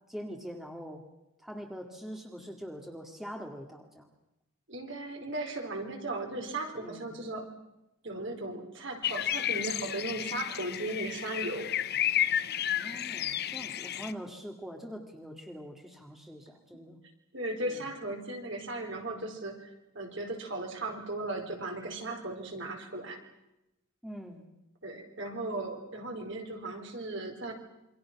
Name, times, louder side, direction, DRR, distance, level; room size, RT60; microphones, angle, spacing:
voice 1, 0.1-1.0 1.4-4.1 6.8-7.1 12.7-17.0 17.6-17.8 24.0-24.4, equal, ahead, 3 dB, 2.2 m, -43 dB
voice 2, 4.7-7.5 8.0-11.7 17.3-19.7 19.9-23.2 24.8-27.5, right 2 dB, 55° right, 3 dB, 4.5 m, -37 dB
sound 1, 9.0-14.1, left 11 dB, 45° left, 0.8 m, -32 dB
28.0 x 24.5 x 6.0 m, 0.90 s
head